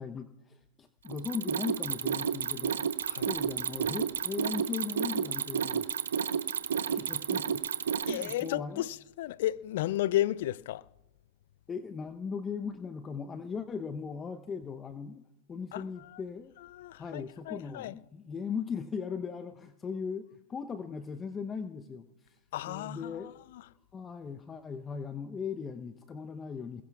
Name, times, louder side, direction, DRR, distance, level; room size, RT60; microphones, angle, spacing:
voice 1, 0.0-2.8 3.2-5.9 6.8-7.6 8.0-8.9 11.7-16.5 16.9-22.4 22.7-23.3 23.9-26.8, left 6 dB, 20° left, 0.8 m, -38 dB
Mechanisms, 1.1-8.5, right 7 dB, 85° right, 0.9 m, -31 dB
voice 2, 8.1-10.9 15.7-16.2 16.7-17.9 22.5-23.6, left 14 dB, 65° left, 0.5 m, -34 dB
27.5 x 21.5 x 2.4 m
hypercardioid pair, 115°, 0 cm